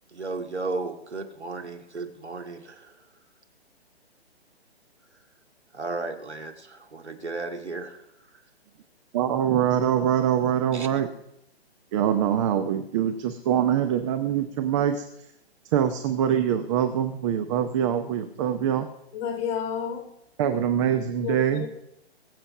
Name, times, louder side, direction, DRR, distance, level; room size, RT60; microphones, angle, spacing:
voice 1, 0.1-3.0 5.7-8.4 10.7-10.9, right 3 dB, 90° right, 4 dB, 2.2 m, -35 dB
voice 2, 9.1-11.1 11.9-15.0 15.7-18.9 20.4-21.7, right 9 dB, 30° right, 8 dB, 0.8 m, -24 dB
voice 3, 19.1-20.1 21.2-21.7, left 7 dB, 25° left, 3 dB, 2.8 m, -30 dB
21.0 x 7.7 x 5.7 m, 0.81 s
figure-of-eight pair, 135°, 33 cm